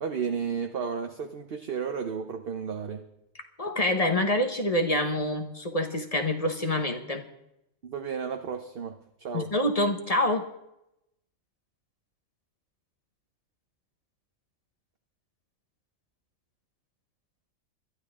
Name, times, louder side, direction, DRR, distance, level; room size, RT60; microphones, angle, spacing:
voice 1, 0.0-3.0 7.8-9.5, right 6 dB, 50° right, 6 dB, 1.0 m, -33 dB
voice 2, 3.6-7.2 9.3-10.4, left 1 dB, 30° left, 5 dB, 1.3 m, -26 dB
21.5 x 12.5 x 3.7 m, 0.84 s
omnidirectional pair, 1.4 m